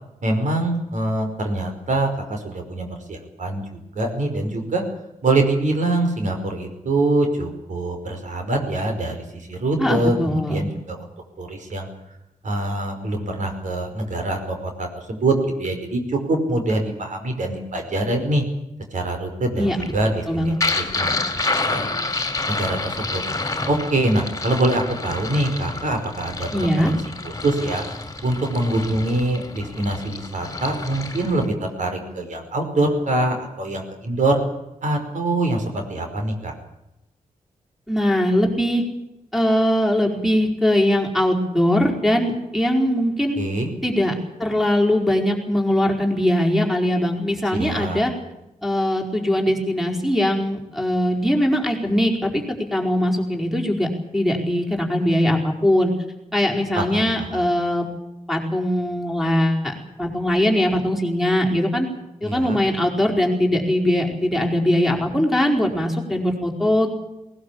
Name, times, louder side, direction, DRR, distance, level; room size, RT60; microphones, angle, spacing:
voice 1, 0.2-4.8 5.2-11.0 11.4-11.9 12.4-18.4 18.9-22.0 22.5-23.2 23.7-26.9 27.2-27.8 28.2-34.4 34.8-36.5 43.4-43.7 47.5-48.0 56.7-57.0 57.3-57.4 62.2-62.6, right 2 dB, 65° right, 4 dB, 5.3 m, -24 dB
voice 2, 9.8-10.6 19.6-19.8 20.3-20.5 26.5-26.9 37.9-38.8 39.3-43.4 43.8-44.1 44.4-48.1 48.6-55.9 56.3-57.9 58.3-61.9 62.2-66.9, left 1 dB, ahead, 2 dB, 4.6 m, -21 dB
sound 1, 19.7-31.5, left 3 dB, 25° left, 2.8 m, -28 dB
20.0 x 19.5 x 8.6 m, 0.92 s
wide cardioid pair, 120°, 14 cm